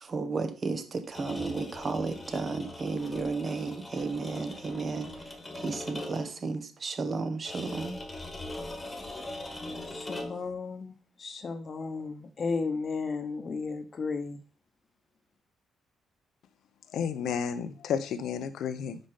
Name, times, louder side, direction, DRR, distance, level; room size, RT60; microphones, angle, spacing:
voice 1, 0.0-8.0, right 4 dB, 40° right, 1.0 m, -33 dB
sound 1, 1.0-6.4 7.4-10.5, left 1 dB, 20° left, 1.4 m, -41 dB
voice 2, 9.9-14.4, left 4 dB, 40° left, 1.0 m, -34 dB
voice 3, 16.9-19.0, left 7 dB, 75° left, 0.8 m, -32 dB
5.3 x 5.1 x 5.6 m
cardioid pair, 90°, 0 cm